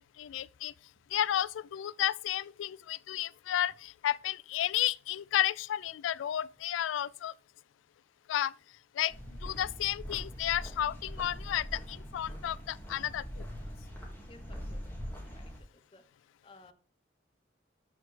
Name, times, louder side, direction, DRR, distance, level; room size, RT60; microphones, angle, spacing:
voice 1, 0.2-0.7 1.1-7.3 8.3-8.5 9.0-9.1 9.4-13.4, left 11 dB, 90° left, 0.3 m, -32 dB
sound 1, 9.1-15.6, equal, 10° left, 2.1 m, -43 dB
voice 2, 14.2-16.0 16.4-16.7, left 2 dB, 30° left, 0.9 m, -58 dB
12.5 x 4.7 x 3.3 m
head